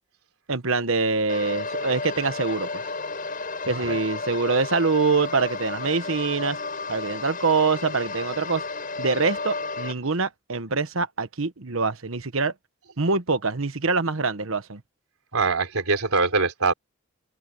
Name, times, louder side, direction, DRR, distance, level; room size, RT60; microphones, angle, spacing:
voice 1, 0.5-2.8 3.7-6.6 6.9-8.6 9.0-12.5 13.0-14.8, right 4 dB, 70° right, 1.2 m, -24 dB
sound 1, 1.3-9.9, left 3 dB, 40° left, 4.9 m, -33 dB
voice 2, 3.6-4.0 15.3-16.7, right 4 dB, 85° right, 3.8 m, -23 dB
open air
head